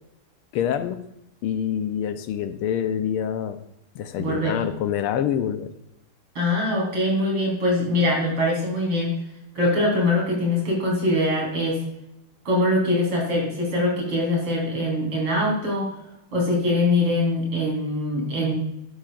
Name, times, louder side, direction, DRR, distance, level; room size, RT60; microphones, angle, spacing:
voice 1, 0.5-1.1 1.4-3.6 3.9-5.7, left 9 dB, 85° left, 9 dB, 1.7 m, -26 dB
voice 2, 4.2-4.6 6.3-9.2 9.5-11.8 12.4-15.9 16.3-18.5, left 1 dB, 85° right, -3 dB, 5.0 m, -23 dB
11.5 x 11.5 x 2.5 m, 0.82 s
omnidirectional pair, 2.4 m